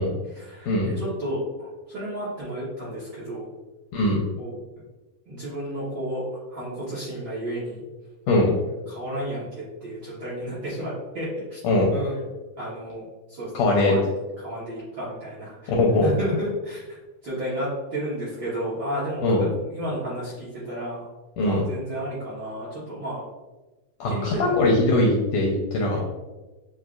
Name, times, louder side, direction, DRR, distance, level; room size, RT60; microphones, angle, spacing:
voice 1, 0.3-3.5 4.4-4.5 5.3-7.8 8.9-11.6 11.9-12.2 12.6-13.0 13.3-14.0 14.4-15.7 16.0-17.0 17.2-21.1 21.4-23.2 24.1-24.5 25.9-26.0, equal, 55° right, -10 dB, 1.4 m, -32 dB
voice 2, 13.5-13.9 15.7-16.1 19.2-19.4 21.4-21.6 24.0-26.0, left 2 dB, 80° left, -2 dB, 1.6 m, -21 dB
7.6 x 2.7 x 2.4 m, 1.1 s
omnidirectional pair, 3.7 m